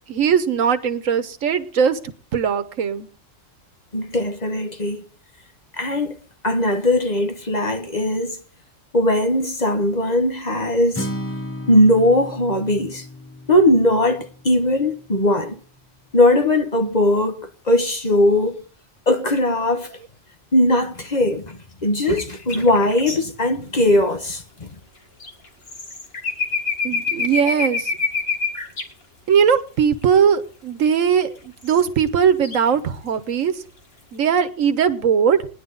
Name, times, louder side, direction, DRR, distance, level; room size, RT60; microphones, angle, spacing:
voice 1, 0.1-3.1 26.8-27.9 29.3-33.6 34.1-35.5, right 7 dB, 90° right, 1.4 m, -19 dB
voice 2, 3.9-5.0 5.7-6.2 6.4-8.4 8.9-11.1 11.7-13.1 13.5-15.6 16.1-18.6 19.1-19.9 20.5-24.7, left 1 dB, 35° left, 1.4 m, -19 dB
Acoustic guitar, 10.9-15.2, left 1 dB, 15° left, 0.5 m, -34 dB
sound 1, 22.0-23.2 25.2-28.8 30.0-30.1 31.1-31.2 31.7-32.6, left 4 dB, 50° left, 2.1 m, -25 dB
19.0 x 10.5 x 3.9 m
omnidirectional pair, 1.3 m